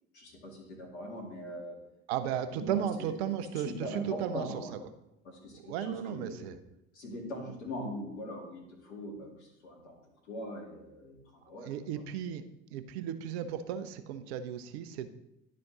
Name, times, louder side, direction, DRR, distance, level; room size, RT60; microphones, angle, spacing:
voice 1, 0.1-1.8 2.5-4.7 5.2-6.5 6.9-10.0 10.2-12.0, equal, 80° left, 0 dB, 2.2 m, -42 dB
voice 2, 2.1-4.5 5.5-6.6 11.6-12.4 12.7-15.1, right 9 dB, 70° right, 11 dB, 0.7 m, -35 dB
11.0 x 4.3 x 4.0 m, 0.91 s
hypercardioid pair, 65°, 33 cm